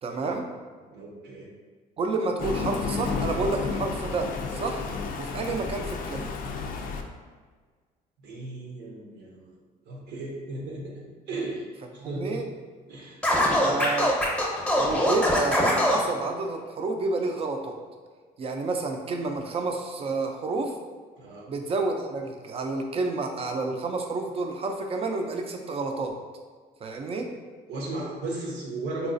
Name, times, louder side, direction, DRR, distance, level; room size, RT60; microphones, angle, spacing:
voice 1, 0.0-0.5 2.0-4.3 4.5-4.8 5.2-6.3 12.0-12.4 13.6-14.1 14.8-17.8 18.4-20.7 21.5-26.1 26.8-27.3, right 3 dB, 35° right, 3 dB, 0.4 m, -29 dB
voice 2, 0.9-1.5 5.5-5.6 8.2-9.5 9.9-11.6 11.9-12.4 12.9-13.2 13.4-13.9 21.2-21.5 27.7-29.1, right 2 dB, 80° right, -3 dB, 0.8 m, -36 dB
Thunder, 2.4-7.0, left 4 dB, 55° left, 0.4 m, -31 dB
Scratching (performance technique), 13.2-16.0, left 1 dB, 5° left, 0.8 m, -22 dB
4.0 x 2.3 x 2.5 m, 1.5 s
cardioid pair, 110°, 17 cm